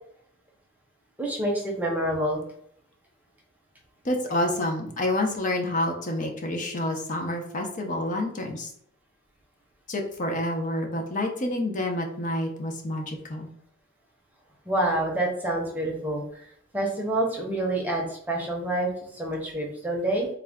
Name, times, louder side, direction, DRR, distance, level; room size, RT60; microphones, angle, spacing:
voice 1, 1.2-2.4 14.7-16.2 16.7-20.3, right 1 dB, 10° right, -2 dB, 0.8 m, -27 dB
voice 2, 4.0-8.7 9.9-13.5, left 1 dB, 40° left, 2 dB, 0.6 m, -28 dB
3.7 x 2.2 x 3.5 m, 0.66 s
head